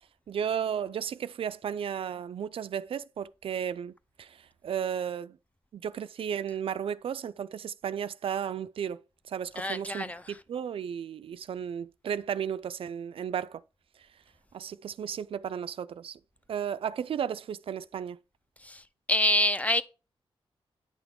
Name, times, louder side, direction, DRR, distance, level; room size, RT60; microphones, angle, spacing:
voice 1, 0.3-3.9 4.2-5.4 5.7-9.0 9.3-13.6 14.5-16.2 16.5-18.2, right 8 dB, 75° right, 0.4 m, -34 dB
voice 2, 9.6-10.2 18.6-18.8 19.1-19.8, left 1 dB, 15° left, 0.5 m, -26 dB
9.5 x 5.9 x 3.6 m
wide cardioid pair, 135°, 10 cm